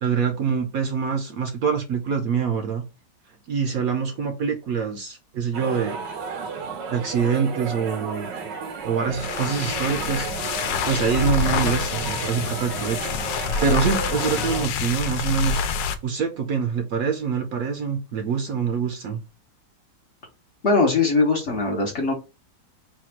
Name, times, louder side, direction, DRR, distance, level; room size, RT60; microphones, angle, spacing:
voice 1, 0.0-2.8 3.5-6.0 6.9-8.3 8.8-10.3 10.9-13.1 13.6-15.6 16.0-19.2, right 6 dB, 65° right, 5 dB, 0.9 m, -25 dB
sound 1, 5.5-14.7, right 5 dB, 90° right, 1.6 m, -33 dB
sound 2, 9.0-16.0, left 5 dB, 90° left, 1.3 m, -27 dB
voice 2, 20.6-22.1, left 3 dB, 50° left, 1 dB, 1.0 m, -20 dB
4.1 x 2.3 x 4.4 m, 0.29 s
omnidirectional pair, 1.9 m